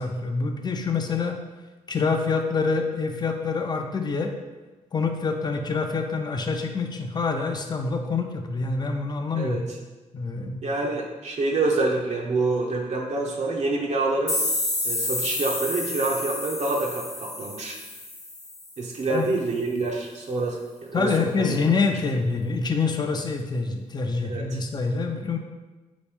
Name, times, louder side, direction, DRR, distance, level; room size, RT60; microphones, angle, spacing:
voice 1, 0.0-1.4 1.9-4.3 4.9-9.7 10.1-10.6 19.0-19.2 20.9-25.4, left 4 dB, 35° left, 4 dB, 0.5 m, -26 dB
voice 2, 9.4-9.8 10.6-14.4 14.8-17.8 18.8-21.1 21.4-21.6 24.2-24.6, right 3 dB, 60° right, -1 dB, 0.6 m, -27 dB
sound 1, 14.3-18.9, left 2 dB, 50° left, 0.9 m, -30 dB
4.2 x 3.0 x 3.4 m, 1.2 s
cardioid pair, 75°, 13 cm